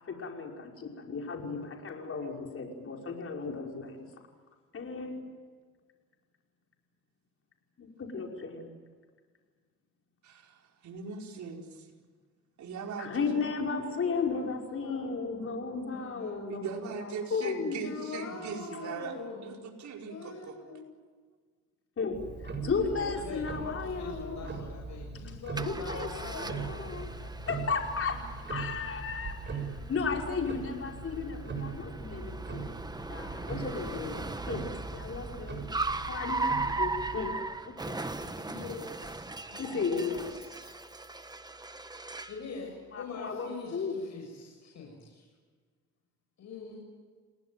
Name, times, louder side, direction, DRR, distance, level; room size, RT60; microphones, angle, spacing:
voice 1, 0.0-4.1 4.7-5.1 7.8-8.7 13.0-18.1 22.0-24.5 25.6-26.1 26.4-27.1 27.5-32.7 33.1-34.7 34.9-35.6 36.0-37.3 37.6-38.0 39.6-40.3 42.9-44.0, left 5 dB, 45° left, 1 dB, 5.7 m, -35 dB
voice 2, 10.2-11.9 12.6-13.4 16.5-19.2 19.4-20.5 29.6-29.7, right 5 dB, 70° right, 1 dB, 4.8 m, -40 dB
voice 3, 14.0-16.6 17.8-19.7 20.1-20.9 22.5-27.0 38.2-40.7 42.3-45.3 46.4-46.8, left 4 dB, 70° left, 0 dB, 6.7 m, -44 dB
Tick-tock, 22.1-37.4, right 4 dB, 35° right, 6.9 m, -40 dB
Car, 25.6-42.4, right 3 dB, 15° right, 1.4 m, -38 dB
29.5 x 19.0 x 9.3 m, 1.5 s
cardioid pair, 90°, 30 cm